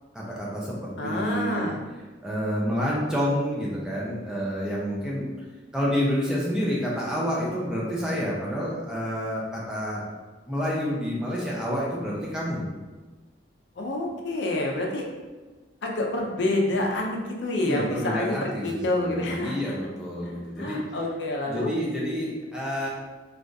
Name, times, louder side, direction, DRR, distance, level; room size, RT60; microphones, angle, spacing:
voice 1, 0.1-1.7 2.2-5.3 5.7-10.0 10.5-12.6 17.6-20.8 21.5-22.9, equal, 5° right, -6 dB, 0.6 m, -28 dB
voice 2, 1.0-1.8 13.8-15.1 15.8-19.6 20.2-21.7, left 1 dB, 70° left, 0 dB, 0.5 m, -28 dB
3.3 x 2.4 x 2.6 m, 1.3 s
head